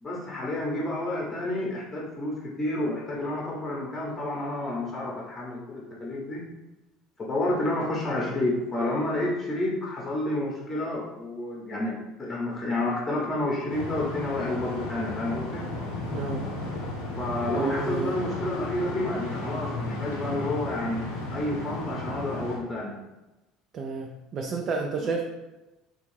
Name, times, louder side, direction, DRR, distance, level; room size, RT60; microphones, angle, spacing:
voice 1, 0.0-6.4 7.2-15.7 17.1-23.0, left 1 dB, 25° left, -3 dB, 0.8 m, -30 dB
sound 1, 13.7-22.6, left 2 dB, 75° left, 0.6 m, -34 dB
voice 2, 16.1-16.4 17.5-18.1 23.7-25.2, right 4 dB, 45° right, 2 dB, 0.3 m, -30 dB
3.3 x 2.4 x 3.2 m, 1.0 s
hypercardioid pair, 65°, 0 cm